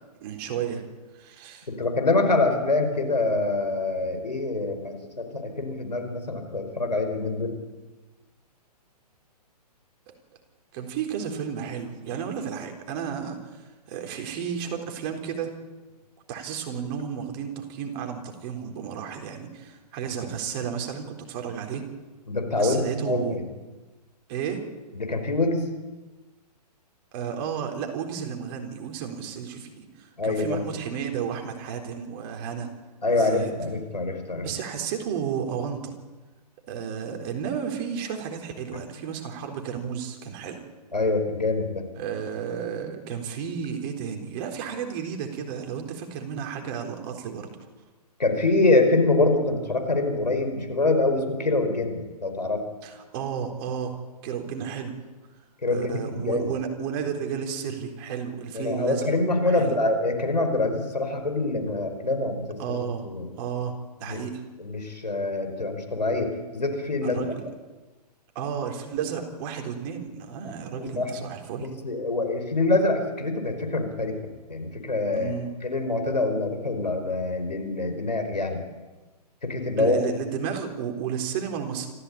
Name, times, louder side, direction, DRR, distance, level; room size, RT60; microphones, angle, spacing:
voice 1, 0.2-0.8 1.1-1.7 10.1-10.2 10.7-15.5 16.3-21.8 22.6-23.4 24.3-24.6 27.1-32.7 33.1-33.5 34.4-35.9 36.7-40.6 42.0-47.5 52.8-54.0 54.2-54.9 55.7-59.1 59.5-59.8 62.6-63.1 63.4-64.4 67.0-67.4 68.4-71.7 75.1-75.5 79.8-81.9, right 7 dB, 35° right, 3 dB, 3.9 m, -32 dB
voice 2, 1.7-7.5 22.3-23.4 24.9-25.7 30.2-30.6 33.0-34.5 40.9-41.8 48.2-52.6 55.6-56.5 58.5-62.8 63.0-63.3 64.0-64.2 64.6-67.2 70.4-71.1 71.8-75.3 75.6-78.6 79.4-80.0, left 2 dB, 90° left, 6 dB, 5.1 m, -25 dB
26.5 x 15.0 x 8.7 m, 1.2 s
figure-of-eight pair, 130°, 21 cm